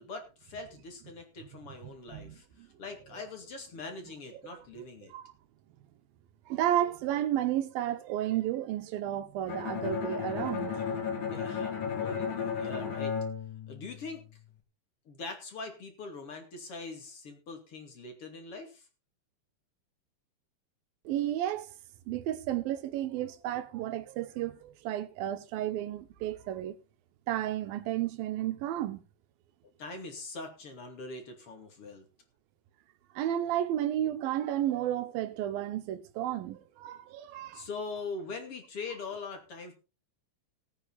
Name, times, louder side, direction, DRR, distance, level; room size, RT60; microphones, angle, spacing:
voice 1, 0.0-2.4 2.8-5.1 11.3-13.1 13.7-14.2 15.1-18.8 29.8-32.0 37.5-39.7, left 3 dB, 40° left, 3.2 m, -42 dB
voice 2, 2.1-2.7 4.0-4.1 4.4-4.9 5.1-5.2 6.5-10.9 21.1-21.7 22.1-26.8 27.3-29.0 33.2-37.7, right 12 dB, 80° right, 2.8 m, -32 dB
Bowed string instrument, 9.5-14.4, left 6 dB, 60° left, 4.1 m, -34 dB
17.0 x 9.0 x 4.2 m
omnidirectional pair, 4.2 m